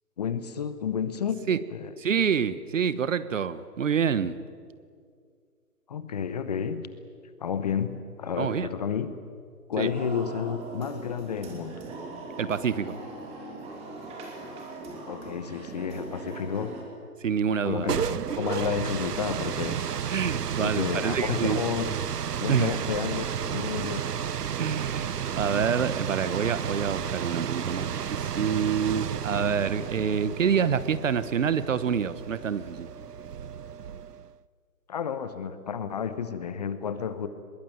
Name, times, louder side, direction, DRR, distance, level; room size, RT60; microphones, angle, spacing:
voice 1, 0.2-1.4 1.7-1.9 5.9-6.9 7.4-9.1 9.7-11.8 15.1-16.7 17.6-19.8 20.6-21.9 22.4-23.2 23.5-24.1 34.9-37.3, left 7 dB, 25° left, 12 dB, 1.0 m, -31 dB
voice 2, 2.0-4.4 8.4-8.7 9.8-9.9 12.4-13.0 17.2-17.9 20.1-21.6 22.5-22.8 24.6-32.9, right 7 dB, 50° right, 16 dB, 1.2 m, -27 dB
sound 1, 9.8-16.8, right 2 dB, 15° right, 3.0 m, -40 dB
sound 2, 17.6-34.3, right 8 dB, 75° right, 0.8 m, -32 dB
23.0 x 21.5 x 9.3 m, 2.2 s
figure-of-eight pair, 150°, 48 cm